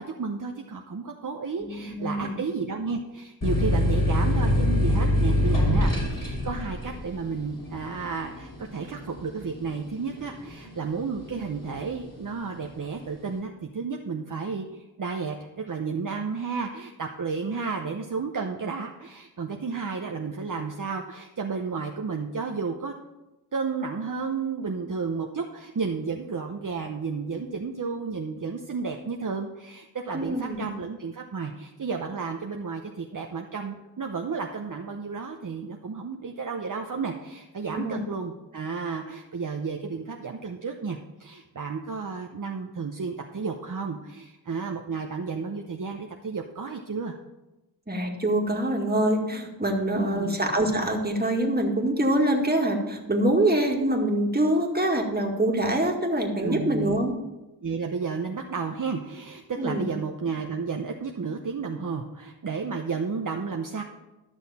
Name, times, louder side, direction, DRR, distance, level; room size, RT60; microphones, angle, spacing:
voice 1, 0.0-22.9 23.5-47.2 49.9-50.4 56.4-57.0 57.6-63.8, right 5 dB, 50° right, 2 dB, 0.8 m, -32 dB
voice 2, 1.6-2.4 30.1-30.7 37.7-38.0 47.9-57.1 59.6-59.9, right 1 dB, 25° right, 1 dB, 1.9 m, -25 dB
sound 1, 3.4-10.7 11.1-11.8, left 1 dB, 50° left, 3.4 m, -24 dB
12.5 x 6.3 x 4.2 m, 1.0 s
wide cardioid pair, 50°, 40 cm